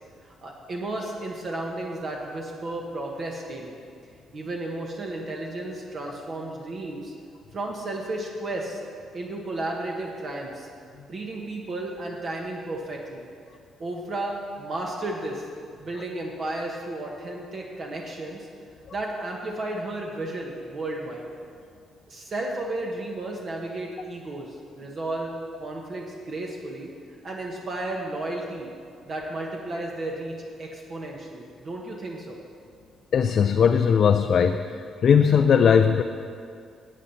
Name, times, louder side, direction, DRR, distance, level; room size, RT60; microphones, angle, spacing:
voice 1, 0.2-3.7 4.3-7.1 7.5-8.8 9.1-10.7 11.1-13.2 13.8-15.4 15.8-18.5 18.9-21.3 22.1-26.9 27.2-28.7 29.1-32.4, right 2 dB, 50° right, 0 dB, 1.3 m, -33 dB
voice 2, 33.1-34.6 35.0-36.0, left 7 dB, 55° left, 6 dB, 0.4 m, -18 dB
9.9 x 8.1 x 5.7 m, 2.3 s
cardioid pair, 90°, 0 cm